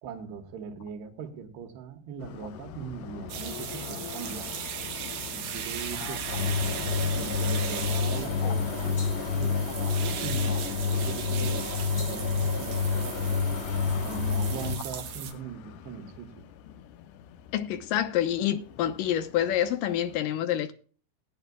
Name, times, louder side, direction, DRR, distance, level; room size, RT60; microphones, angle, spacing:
voice 1, 0.0-4.5 5.3-9.1 9.3-13.3 14.0-16.5, right 7 dB, 90° right, 3.6 m, -41 dB
sound 1, 2.2-20.2, left 9 dB, 90° left, 3.0 m, -43 dB
sound 2, 3.3-15.3, right 9 dB, 70° right, 3.0 m, -38 dB
sound 3, 6.3-14.7, left 4 dB, 50° left, 0.7 m, -28 dB
voice 2, 17.5-20.7, left 11 dB, 70° left, 2.3 m, -28 dB
19.0 x 9.4 x 2.3 m
omnidirectional pair, 4.6 m